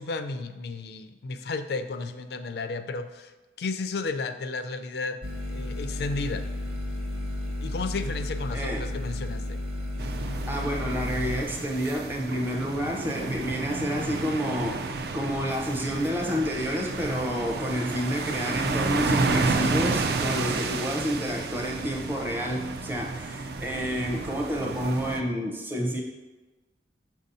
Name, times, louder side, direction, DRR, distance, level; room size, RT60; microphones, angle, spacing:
voice 1, 0.0-3.3 3.6-5.2 5.5-6.4 7.6-9.6, left 3 dB, 60° left, 9 dB, 0.4 m, -33 dB
sound 1, 5.2-11.4, left 1 dB, 30° right, 0.9 m, -32 dB
voice 2, 8.5-8.9 10.5-26.0, equal, 10° right, 0 dB, 0.6 m, -29 dB
sound 2, 10.0-25.2, right 3 dB, 55° right, 0.4 m, -31 dB
6.6 x 2.7 x 5.3 m, 1.2 s
head